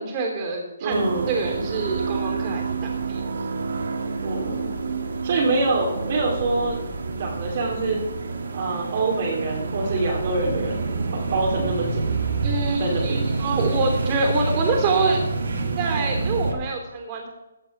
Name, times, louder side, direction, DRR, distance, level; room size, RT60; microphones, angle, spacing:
voice 1, 0.0-3.2 12.4-15.2 15.8-17.3, right 3 dB, 30° right, 1 dB, 3.3 m, -26 dB
voice 2, 0.8-1.3 4.2-4.7 5.2-6.8 7.2-8.0 8.5-10.9 11.3-12.0 12.8-13.2, right 3 dB, 45° right, -3 dB, 2.6 m, -25 dB
sound 1, 0.9-16.5, right 4 dB, 70° right, 2.0 m, -28 dB
15.5 x 6.7 x 6.0 m, 1.0 s
hypercardioid pair, 150°, 0 cm